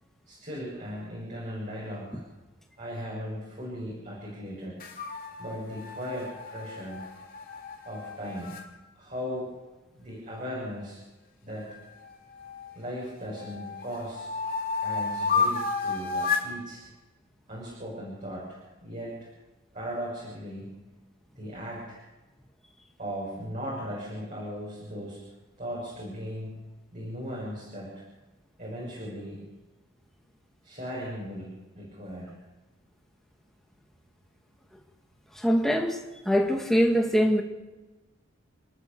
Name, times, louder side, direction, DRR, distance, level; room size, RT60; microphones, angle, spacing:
voice 1, 0.3-2.2 2.8-4.8 5.4-7.0 7.8-8.6 8.9-9.5 9.9-11.0 11.4-11.7 12.7-14.3 14.8-16.8 17.5-19.3 19.7-20.7 21.4-22.0 23.0-25.2 25.6-26.6 26.9-27.9 28.6-29.4 30.6-32.3, equal, 35° right, -5 dB, 6.5 m, -37 dB
sound 1, 4.8-8.6 11.6-12.8 13.3-16.5, left 4 dB, 40° left, 3.2 m, -32 dB
voice 2, 35.3-37.4, equal, ahead, 2 dB, 2.2 m, -23 dB
29.5 x 13.0 x 6.9 m, 1.2 s
head